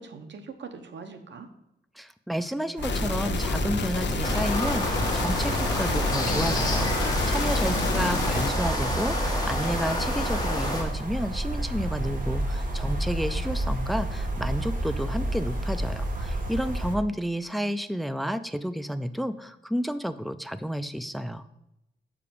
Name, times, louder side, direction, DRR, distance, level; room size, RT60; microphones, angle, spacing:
voice 1, 0.0-1.5 7.6-8.3, right 5 dB, 80° right, 7 dB, 1.0 m, -40 dB
voice 2, 2.0-21.5, equal, ahead, 12 dB, 0.4 m, -31 dB
sound 1, 2.8-8.5, left 5 dB, 75° left, 0.9 m, -30 dB
sound 2, 2.8-16.9, right 1 dB, 45° right, 1.6 m, -30 dB
sound 3, 4.2-10.8, left 1 dB, 20° left, 1.9 m, -30 dB
6.8 x 5.0 x 6.9 m, 0.86 s
wide cardioid pair, 115°, 18 cm